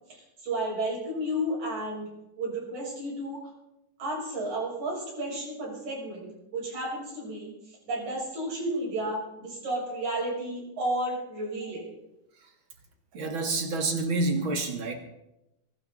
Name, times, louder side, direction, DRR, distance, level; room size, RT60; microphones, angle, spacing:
voice 1, 0.1-2.1 2.4-3.5 4.0-11.9, right 1 dB, 75° right, -3 dB, 7.7 m, -32 dB
voice 2, 13.1-14.9, right 2 dB, 45° right, 4 dB, 2.4 m, -28 dB
23.0 x 12.5 x 4.1 m, 0.89 s
omnidirectional pair, 3.4 m